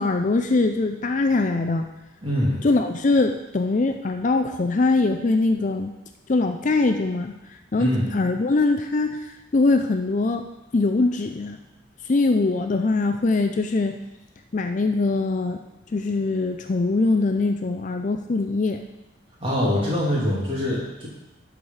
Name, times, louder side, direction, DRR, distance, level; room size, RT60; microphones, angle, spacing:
voice 1, 0.0-1.9 2.6-5.9 6.3-7.3 7.7-11.6 12.1-14.0 14.5-15.6 15.9-18.8, left 3 dB, 40° left, 5 dB, 0.4 m, -22 dB
voice 2, 2.2-2.6 7.7-8.0 19.4-21.1, left 1 dB, 25° right, -6 dB, 2.8 m, -23 dB
11.5 x 4.9 x 5.6 m, 1.0 s
head